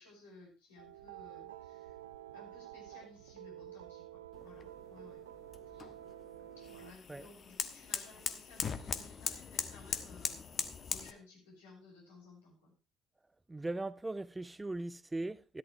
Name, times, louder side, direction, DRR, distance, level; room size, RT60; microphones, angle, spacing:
voice 1, 0.0-2.0 2.3-5.2 5.7-5.9 6.6-12.7, left 3 dB, 75° left, 7.0 m, -58 dB
sound 1, 0.8-6.9, right 13 dB, 75° right, 0.7 m, -50 dB
sound 2, 4.3-11.1, left 6 dB, 40° left, 1.3 m, -41 dB
voice 2, 13.5-15.6, right 2 dB, 15° right, 0.6 m, -39 dB
13.5 x 13.0 x 3.3 m
figure-of-eight pair, 55°, 0 cm